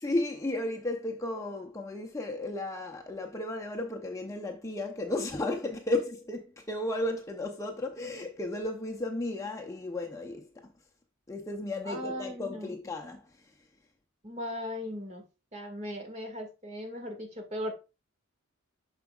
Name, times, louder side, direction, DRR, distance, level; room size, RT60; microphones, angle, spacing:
voice 1, 0.0-10.5 11.3-13.3, left 2 dB, 15° left, 0.6 m, -34 dB
voice 2, 11.9-12.8 14.2-15.2 15.5-17.7, equal, 35° right, 1.8 m, -38 dB
7.4 x 6.0 x 2.3 m
head